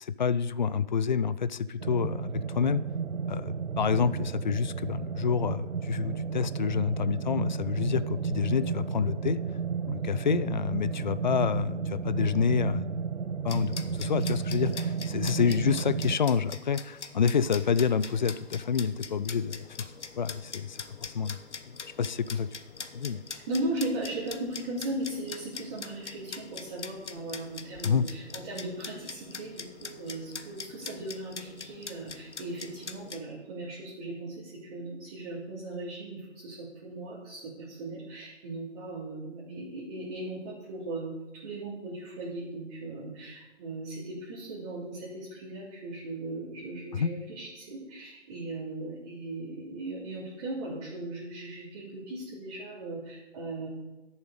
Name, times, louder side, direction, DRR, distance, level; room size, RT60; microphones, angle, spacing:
voice 1, 0.0-2.8 3.3-9.4 9.9-12.9 13.4-19.6 20.2-21.4 21.7-22.5 22.9-23.2 27.8-28.1 46.9-47.1, left 6 dB, 40° left, 16 dB, 0.4 m, -28 dB
sound 1, 1.8-16.2, right 6 dB, 80° right, 0.7 m, -33 dB
sound 2, 13.5-33.2, left 5 dB, 75° left, 1.0 m, -43 dB
voice 2, 23.3-41.1 41.4-53.7, right 2 dB, 35° right, -8 dB, 3.1 m, -38 dB
12.5 x 7.2 x 5.0 m, 1.1 s
figure-of-eight pair, 135°, 36 cm